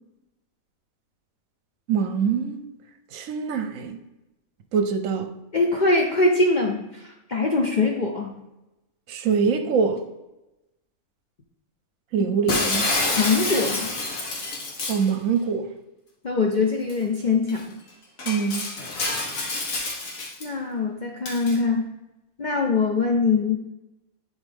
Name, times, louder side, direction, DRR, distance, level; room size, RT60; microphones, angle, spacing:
voice 1, 1.9-2.6 3.1-4.0 4.7-5.3 9.1-10.0 12.1-12.9 14.9-15.7 18.3-18.7, right 6 dB, 70° right, 1.0 m, -24 dB
voice 2, 5.5-8.3 12.7-12.8 13.2-13.9 16.2-17.7 20.4-21.9 22.4-23.6, left 3 dB, 50° left, 0.5 m, -23 dB
Shatter, 12.5-15.1 16.9-17.0 17.5-17.6 18.2-20.4 21.2-21.6, left 2 dB, 70° left, 1.6 m, -27 dB
10.5 x 4.0 x 3.5 m
omnidirectional pair, 1.5 m